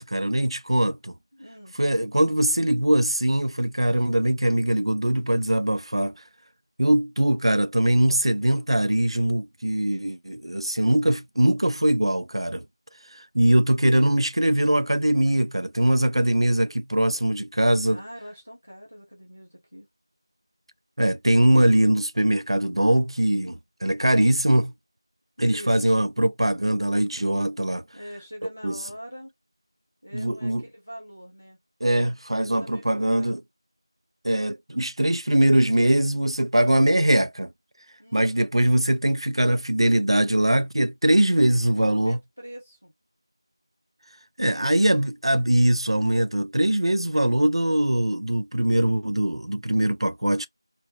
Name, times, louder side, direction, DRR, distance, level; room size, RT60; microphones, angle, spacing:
voice 1, 0.0-1.1 1.8-6.1 6.8-12.6 13.1-18.0 21.0-24.7 25.4-27.8 28.6-28.8 30.1-30.6 31.8-33.4 34.2-37.5 38.1-42.2 44.4-50.5, right 1 dB, 80° right, 0.3 m, -22 dB
voice 2, 1.3-1.8 17.8-19.9 25.4-26.1 27.9-29.3 30.0-31.6 32.5-33.4 38.0-38.5 41.7-42.9 44.4-44.8, equal, 15° left, 0.4 m, -43 dB
2.5 x 2.2 x 3.0 m
figure-of-eight pair, 180°, 3 cm